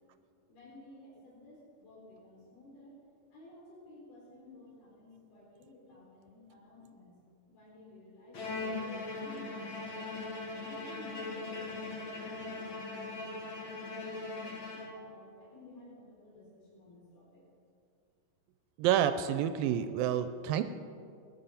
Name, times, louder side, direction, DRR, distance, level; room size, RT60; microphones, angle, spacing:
voice 1, 0.5-3.0 3.3-7.2 7.5-10.0 10.6-14.3 14.7-17.4, left 1 dB, 85° left, -5 dB, 5.8 m, -55 dB
Bowed string instrument, 8.3-15.3, left 3 dB, 50° left, 1.6 m, -40 dB
voice 2, 18.8-20.6, right 10 dB, 80° right, 11 dB, 2.2 m, -29 dB
18.5 x 10.5 x 5.7 m, 2.4 s
omnidirectional pair, 4.3 m